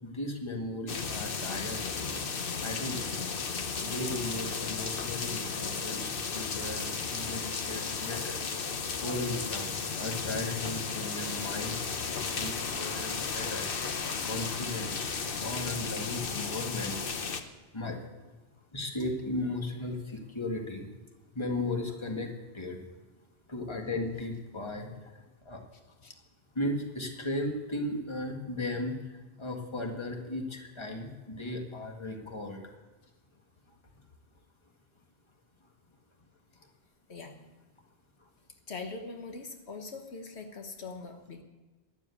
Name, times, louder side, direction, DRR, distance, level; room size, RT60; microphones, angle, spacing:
voice 1, 0.0-2.2 2.6-3.2 3.8-8.4 9.0-11.8 12.3-13.7 14.2-15.0 15.4-17.0 17.7-18.0 18.7-20.9 21.4-22.3 22.5-22.8 23.5-24.9 25.5-25.6 26.6-29.0 29.4-32.6, left 2 dB, 25° left, 2 dB, 1.8 m, -36 dB
sound 1, 0.9-17.4, left 5 dB, 60° left, 1.1 m, -34 dB
voice 2, 37.1-37.4 38.7-41.4, left 3 dB, 80° left, 4 dB, 1.5 m, -42 dB
12.5 x 10.5 x 8.4 m, 1.2 s
omnidirectional pair, 1.1 m